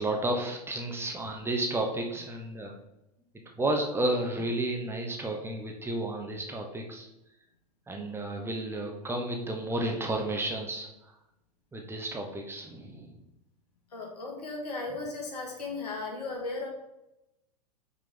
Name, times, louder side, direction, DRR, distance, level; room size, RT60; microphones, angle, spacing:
voice 1, 0.0-2.7 3.6-7.1 7.9-10.9 11.7-13.1, right 1 dB, 10° right, 1 dB, 0.9 m, -32 dB
voice 2, 13.9-16.7, left 3 dB, 75° left, 0 dB, 1.7 m, -36 dB
5.8 x 3.6 x 5.2 m, 0.90 s
figure-of-eight pair, 95°, 21 cm